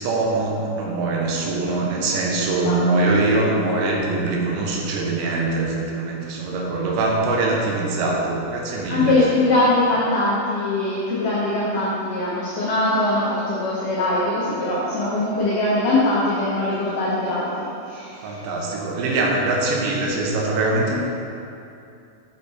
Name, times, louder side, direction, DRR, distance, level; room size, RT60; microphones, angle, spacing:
voice 1, 0.0-9.2 18.2-20.9, right 2 dB, 85° right, -1 dB, 3.0 m, -23 dB
voice 2, 2.5-3.0 8.9-18.5, left 2 dB, 90° left, -7 dB, 1.8 m, -22 dB
7.3 x 5.4 x 4.1 m, 2.7 s
omnidirectional pair, 5.2 m